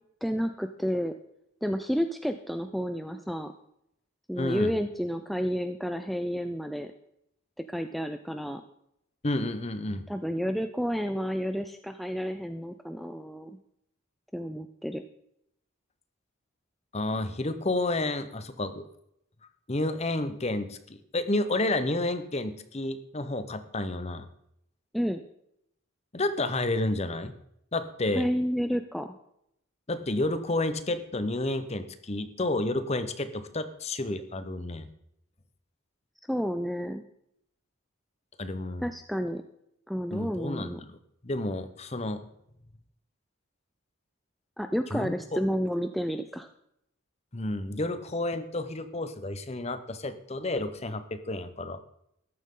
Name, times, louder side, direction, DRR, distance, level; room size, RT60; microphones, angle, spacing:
voice 1, 0.2-1.1 1.6-3.5 4.3-6.9 7.7-8.6 10.1-13.5 14.3-15.0 24.9-25.2 28.2-29.1 36.3-37.0 38.8-39.4 39.9-40.8 44.6-46.5, equal, ahead, 7 dB, 0.4 m, -30 dB
voice 2, 4.4-4.7 9.2-10.0 16.9-18.9 19.7-24.3 26.1-27.3 27.7-28.3 29.9-34.9 38.4-38.8 40.1-41.0 41.2-42.2 44.9-45.4 47.3-51.8, left 2 dB, 30° left, 11 dB, 0.9 m, -30 dB
13.5 x 11.5 x 3.8 m, 0.77 s
head